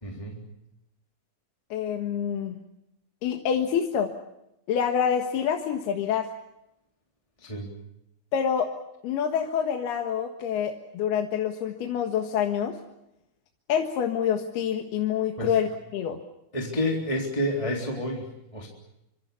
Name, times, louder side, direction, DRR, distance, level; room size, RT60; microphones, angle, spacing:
voice 1, 0.0-0.4 7.4-7.7 15.4-15.5 16.5-18.7, left 1 dB, 10° left, 0 dB, 3.3 m, -29 dB
voice 2, 1.7-2.6 3.2-4.1 4.7-6.3 8.3-8.7 9.0-12.8 13.7-16.2, left 8 dB, 75° left, 3 dB, 3.5 m, -27 dB
27.0 x 25.5 x 7.0 m, 0.86 s
omnidirectional pair, 4.7 m